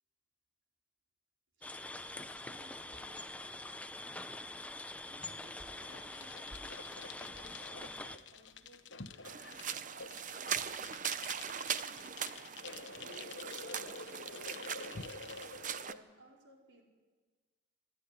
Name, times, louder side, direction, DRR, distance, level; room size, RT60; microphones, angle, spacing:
sound 1, 1.6-8.2, left 2 dB, 5° left, 0.6 m, -45 dB
voice 1, 1.6-2.1 2.4-3.7 5.1-9.6 9.9-10.8 11.5-12.4 12.9-15.2 15.8-16.8, right 1 dB, 70° right, 1 dB, 4.5 m, -61 dB
sound 2, 5.7-16.0, left 4 dB, 70° left, 1.1 m, -48 dB
sound 3, 9.2-15.9, right 8 dB, 40° right, 0.7 m, -40 dB
27.5 x 12.0 x 9.9 m, 1.4 s
head